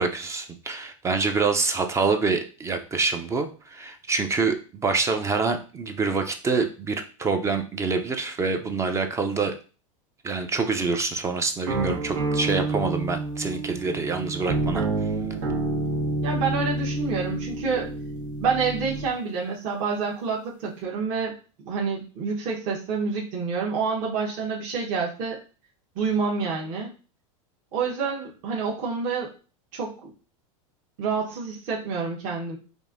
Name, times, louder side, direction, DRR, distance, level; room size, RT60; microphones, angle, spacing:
voice 1, 0.0-9.6 10.2-14.8, right 4 dB, 15° right, 6 dB, 0.4 m, -26 dB
sound 1, 11.7-19.1, right 2 dB, 85° right, 1.4 m, -28 dB
voice 2, 16.2-17.9 18.4-21.3 21.7-25.4 25.9-26.9 27.7-29.3 29.7-30.1 31.0-32.6, right 5 dB, 50° right, -2 dB, 1.0 m, -28 dB
5.1 x 2.6 x 2.5 m, 0.36 s
supercardioid pair, 125°, 17 cm